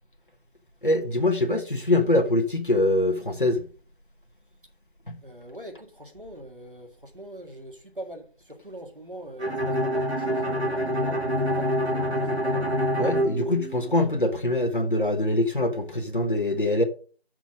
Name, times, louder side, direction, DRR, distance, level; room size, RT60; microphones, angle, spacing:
voice 1, 0.8-3.6 13.0-16.8, left 1 dB, 55° left, 1.2 m, -23 dB
voice 2, 5.2-11.3 11.6-12.7, equal, 55° right, 2.0 m, -43 dB
Bowed string instrument, 9.4-14.2, equal, 90° right, 2.3 m, -26 dB
6.1 x 5.7 x 6.0 m
figure-of-eight pair, 180°, 32 cm